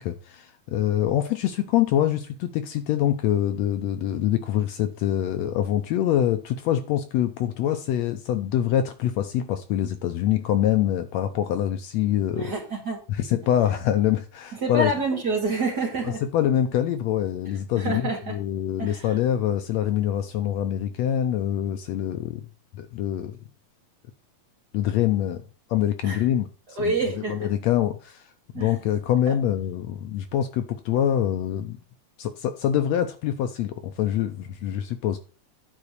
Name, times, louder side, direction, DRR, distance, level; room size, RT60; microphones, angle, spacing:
voice 1, 0.0-12.5 13.1-14.9 16.0-22.5 22.7-23.4 24.7-25.4 25.7-31.8 32.2-35.2, left 11 dB, 75° left, 1.7 m, -25 dB
voice 2, 12.3-13.0 14.6-16.2 17.8-18.3 18.8-19.1 26.0-26.2 26.8-27.4 28.5-28.7 29.3-29.4, right 2 dB, 35° right, 2.4 m, -27 dB
10.0 x 4.0 x 6.6 m
omnidirectional pair, 3.5 m